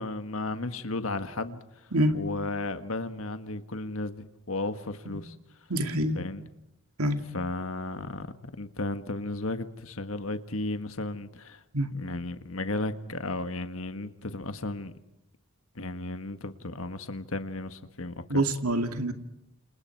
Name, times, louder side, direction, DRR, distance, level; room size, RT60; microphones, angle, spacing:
voice 1, 0.0-1.9 2.1-5.4 6.2-6.4 7.3-11.6 11.9-14.9 15.8-18.4, left 2 dB, 70° left, 1.7 m, -34 dB
voice 2, 5.7-6.2 7.0-7.2 11.7-11.9 18.3-19.1, right 1 dB, 85° right, 2.5 m, -26 dB
29.5 x 28.0 x 4.7 m
head